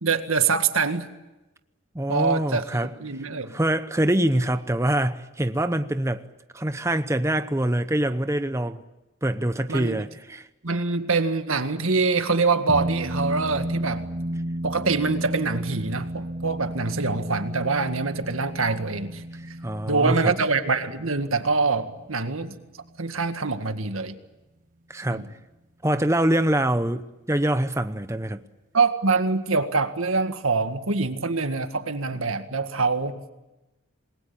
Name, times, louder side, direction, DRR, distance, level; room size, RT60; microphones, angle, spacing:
voice 1, 0.0-1.1 2.1-2.6 3.0-3.6 9.7-10.1 10.6-14.1 14.6-19.2 19.9-22.5 23.0-24.2 25.1-25.3 28.7-33.2, right 4 dB, 80° right, 1.9 m, -24 dB
voice 2, 1.9-2.9 3.5-6.2 6.5-8.8 9.2-10.5 19.4-20.3 24.9-25.2 25.8-28.4, right 1 dB, 15° right, 0.8 m, -24 dB
sound 1, 12.7-23.4, right 1 dB, 40° right, 1.3 m, -33 dB
27.5 x 21.0 x 8.7 m
head